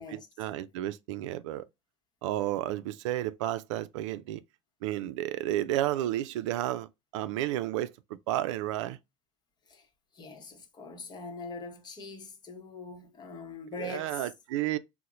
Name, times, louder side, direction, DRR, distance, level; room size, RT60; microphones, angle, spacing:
voice 1, 0.0-1.6 2.2-4.4 4.8-9.0 13.8-14.8, right 14 dB, 75° right, 0.4 m, -32 dB
voice 2, 10.1-14.2, left 3 dB, 25° left, 0.9 m, -42 dB
2.9 x 2.1 x 3.7 m
supercardioid pair, 105°, 16 cm